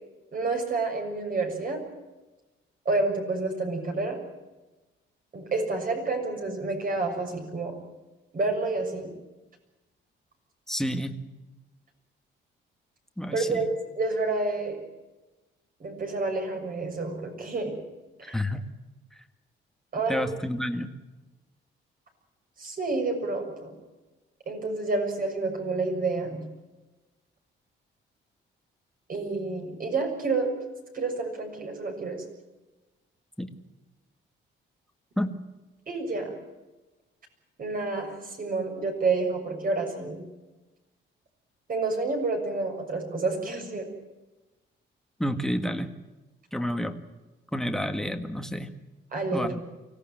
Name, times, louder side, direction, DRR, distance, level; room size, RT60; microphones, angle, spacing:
voice 1, 0.3-1.8 2.8-4.2 5.3-7.8 8.3-9.1 13.3-13.7 14.0-14.8 15.8-17.8 18.2-18.4 19.9-20.3 22.6-23.8 24.5-26.5 29.1-30.5 30.9-32.2 35.9-36.3 37.6-40.2 41.7-43.9 49.1-49.5, right 3 dB, 45° right, 3 dB, 6.7 m, -29 dB
voice 2, 10.7-11.2 13.2-13.7 18.2-18.7 20.1-20.9 33.4-33.5 35.2-35.4 45.2-45.9 46.5-47.0 47.5-48.7 49.3-49.6, equal, ahead, 7 dB, 1.8 m, -29 dB
24.5 x 17.5 x 9.0 m, 1.1 s
cardioid pair, 115°, 20 cm